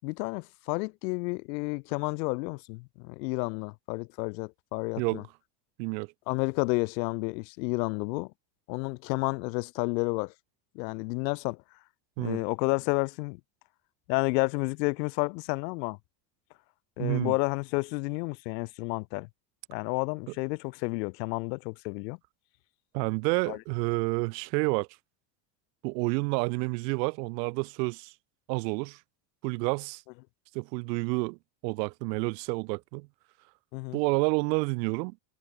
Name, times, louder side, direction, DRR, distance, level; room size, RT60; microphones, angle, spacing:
voice 1, 0.0-5.2 6.3-8.3 8.7-10.3 10.7-11.6 12.2-13.4 14.1-16.0 17.0-19.3 19.7-22.2 23.5-23.6 33.7-34.0, left 28 dB, 90° left, 5.8 m, -31 dB
voice 2, 17.0-17.3 22.9-24.9 25.8-28.1 28.5-29.0 29.4-30.0 30.5-31.4 31.6-33.1 33.9-35.2, right 29 dB, 85° right, 4.1 m, -29 dB
cardioid pair, 175°, 49 cm